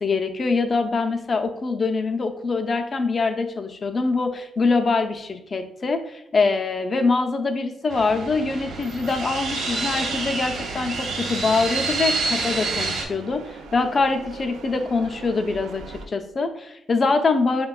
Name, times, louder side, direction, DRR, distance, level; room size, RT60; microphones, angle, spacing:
voice 1, 0.0-17.7, left 3 dB, 40° left, 6 dB, 0.4 m, -24 dB
sound 1, 7.9-13.0, right 3 dB, 70° right, 1.1 m, -28 dB
sound 2, 9.5-16.1, right 5 dB, 85° right, 0.3 m, -41 dB
5.7 x 2.2 x 2.3 m, 0.83 s
cardioid pair, 90°, 0 cm